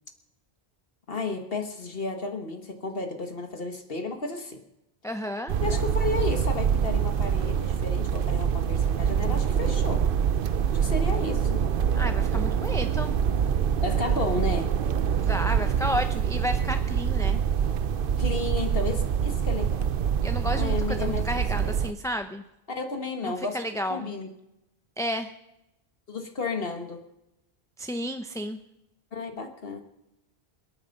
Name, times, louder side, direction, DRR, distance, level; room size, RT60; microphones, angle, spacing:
voice 1, 1.1-4.6 5.6-10.0 10.7-11.6 13.8-14.7 18.2-19.9 20.5-21.2 21.6-21.7 22.7-23.6 23.9-24.3 26.1-27.0 29.1-29.8, left 3 dB, 65° left, 5 dB, 1.7 m, -32 dB
voice 2, 5.0-5.5 11.9-13.2 15.2-17.4 20.2-22.4 23.2-24.1 25.0-25.3 27.8-28.6, equal, 5° left, 7 dB, 0.6 m, -32 dB
sound 1, 5.5-21.9, right 8 dB, 60° right, 0.8 m, -25 dB
27.0 x 9.4 x 5.3 m, 0.87 s
omnidirectional pair, 1.1 m